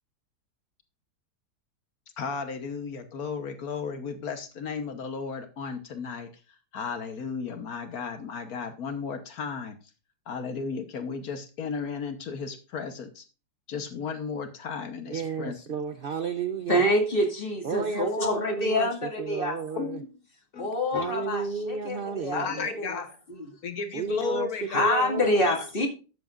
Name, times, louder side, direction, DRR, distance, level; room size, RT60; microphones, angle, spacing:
voice 1, 2.2-6.3 6.7-9.7 10.3-13.2 13.7-15.5 19.8-20.1 20.5-20.7 20.9-21.1 22.3-23.1 23.6-24.9 25.2-25.3 25.6-25.7, left 5 dB, 65° left, 1.5 m, -34 dB
voice 2, 15.1-16.8 17.6-20.0 20.9-22.7 23.9-25.5, right 5 dB, 60° right, 0.5 m, -32 dB
voice 3, 16.7-19.6 20.6-23.0 23.3-23.4 24.7-25.9, left 1 dB, 35° left, 2.4 m, -26 dB
12.5 x 8.0 x 2.4 m
omnidirectional pair, 1.7 m